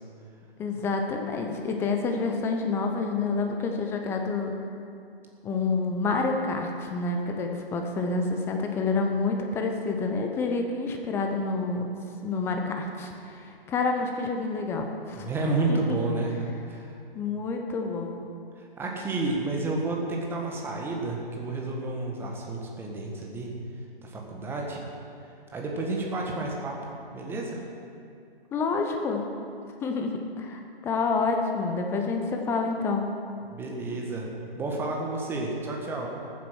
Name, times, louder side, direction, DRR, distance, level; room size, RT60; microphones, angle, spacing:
voice 1, 0.6-4.5 5.4-11.9 12.2-15.3 15.7-16.0 17.1-18.2 28.5-29.3 29.8-33.1, left 4 dB, 10° left, 3 dB, 0.7 m, -28 dB
voice 2, 15.2-17.0 18.6-23.5 24.0-24.8 25.5-26.8 27.1-27.6 33.5-34.3 34.6-36.1, right 2 dB, 5° right, -1 dB, 1.4 m, -30 dB
14.5 x 8.8 x 6.3 m, 2.5 s
figure-of-eight pair, 135°, 30 cm